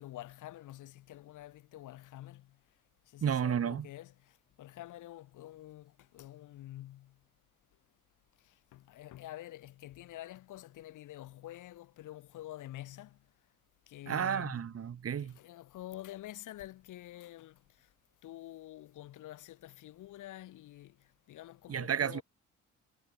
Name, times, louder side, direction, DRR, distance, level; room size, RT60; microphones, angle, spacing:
voice 1, 0.0-2.6 3.1-7.2 8.4-13.2 13.9-14.7 15.2-17.9 18.2-22.2, left 14 dB, 85° left, 6.2 m, -48 dB
voice 2, 3.2-3.9 14.1-15.4 21.7-22.2, right 8 dB, 50° right, 2.4 m, -32 dB
cardioid pair, 90°, 30 cm